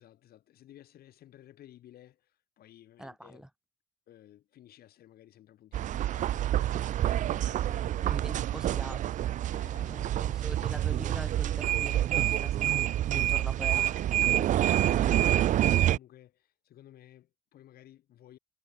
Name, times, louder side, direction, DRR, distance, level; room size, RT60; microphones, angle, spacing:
voice 1, 0.0-3.5 4.1-8.1 9.5-10.1 14.3-18.4, left 12 dB, 65° left, 5.3 m, -54 dB
voice 2, 3.0-3.5 8.0-9.1 9.8-14.2, right 1 dB, 5° right, 1.6 m, -43 dB
sound 1, 5.7-16.0, right 12 dB, 50° right, 0.4 m, -27 dB
cardioid pair, 110°, 17 cm